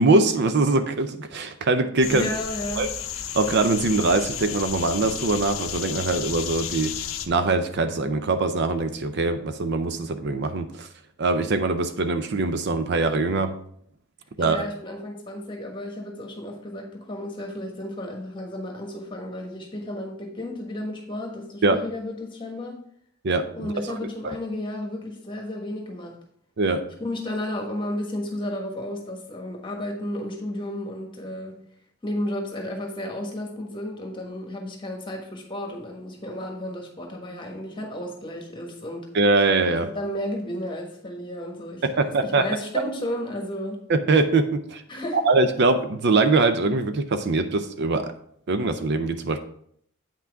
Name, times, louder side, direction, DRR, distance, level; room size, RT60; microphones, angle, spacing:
voice 1, 0.0-2.3 2.8-2.9 3.3-6.9 7.3-10.9 11.2-13.5 14.4-14.6 21.6-21.8 23.2-24.0 24.2-24.3 26.6-26.8 39.1-39.9 41.8-42.5 43.9-44.8 45.1-48.1 48.5-49.4, right 3 dB, 50° right, 9 dB, 0.5 m, -22 dB
sound 1, 2.0-7.3, left 9 dB, 65° left, 0.6 m, -33 dB
voice 2, 2.1-2.9 14.4-22.8 23.5-26.1 27.0-31.6 32.0-39.1 39.9-43.8 44.9-45.2, left 1 dB, 20° left, 2 dB, 1.3 m, -33 dB
8.5 x 5.9 x 3.5 m, 0.66 s
head